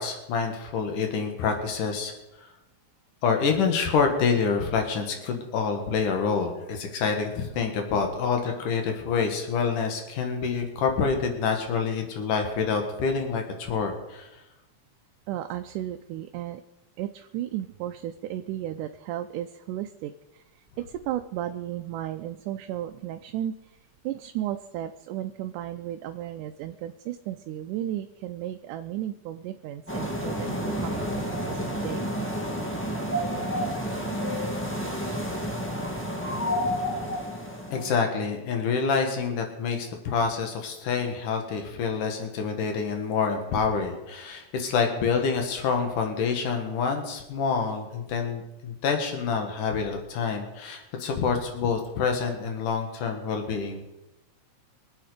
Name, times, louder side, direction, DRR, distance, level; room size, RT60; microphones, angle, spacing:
voice 1, 0.0-2.1 3.2-14.3 37.7-53.8, left 5 dB, 85° left, 4 dB, 3.3 m, -27 dB
voice 2, 15.3-16.6 17.0-20.4 20.8-23.5 24.0-32.1, right 12 dB, 85° right, 7 dB, 2.2 m, -34 dB
sound 1, 29.9-37.9, equal, 10° left, 0.5 m, -30 dB
24.5 x 8.5 x 5.0 m, 0.98 s
omnidirectional pair, 3.6 m